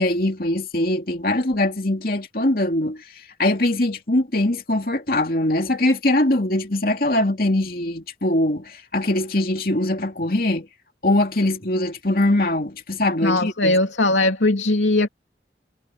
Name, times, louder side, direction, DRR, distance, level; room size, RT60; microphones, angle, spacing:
voice 1, 0.0-3.0 3.4-10.7 11.0-13.8, left 1 dB, 50° left, 2.8 m, -22 dB
voice 2, 13.2-15.1, left 2 dB, 80° left, 2.9 m, -19 dB
head